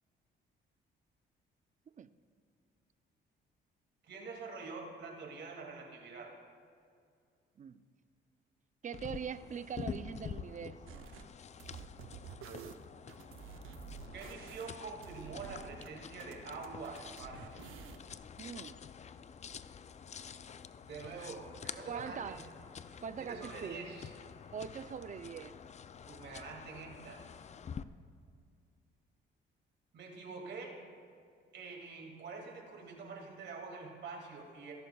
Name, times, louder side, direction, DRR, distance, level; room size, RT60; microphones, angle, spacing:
voice 1, 4.0-6.3 14.1-17.6 20.8-22.4 23.2-24.1 26.0-27.2 29.9-30.8 31.5-34.7, right 4 dB, 65° right, 0 dB, 2.3 m, -46 dB
voice 2, 8.8-11.0 18.4-18.7 21.2-21.3 21.9-22.4 23.0-23.8 24.5-25.6, right 7 dB, 40° right, 13 dB, 0.5 m, -42 dB
sound 1, 8.9-27.8, left 7 dB, 35° left, 0.4 m, -48 dB
sound 2, 10.9-11.2 11.6-15.9 16.2-18.1, right 7 dB, 85° right, 0.8 m, -50 dB
20.0 x 11.5 x 2.3 m, 2.3 s
cardioid pair, 90°, 20 cm